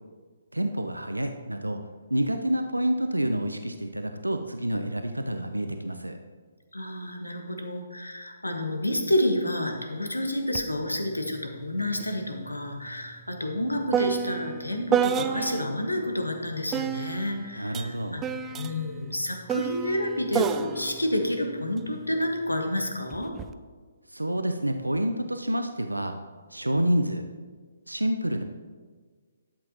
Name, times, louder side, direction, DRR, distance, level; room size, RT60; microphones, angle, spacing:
voice 1, 0.5-1.8 2.1-6.2 17.5-18.2 24.1-26.2 26.5-27.2 27.9-28.4, right 1 dB, 90° right, 6 dB, 0.5 m, -28 dB
voice 2, 6.7-23.3, left 1 dB, 85° left, 4 dB, 1.3 m, -29 dB
sound 1, 10.6-10.7 11.0-15.8 16.7-22.3 23.1-23.5, right 8 dB, 15° right, 0.3 m, -31 dB
11.5 x 7.6 x 2.9 m, 1.5 s
figure-of-eight pair, 135°, 0 cm